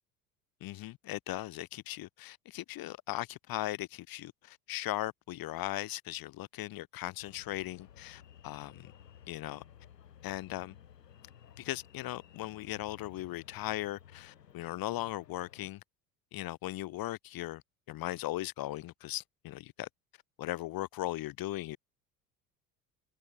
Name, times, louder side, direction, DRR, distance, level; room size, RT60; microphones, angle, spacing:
voice 1, 0.6-8.9 9.3-9.6 10.2-10.8 11.6-15.8 16.3-17.6 17.9-19.9 20.4-21.8, left 16 dB, 45° left, 2.0 m, -38 dB
sound 1, 7.2-15.7, left 9 dB, 85° left, 1.7 m, -56 dB
figure-of-eight pair, 70°, 48 cm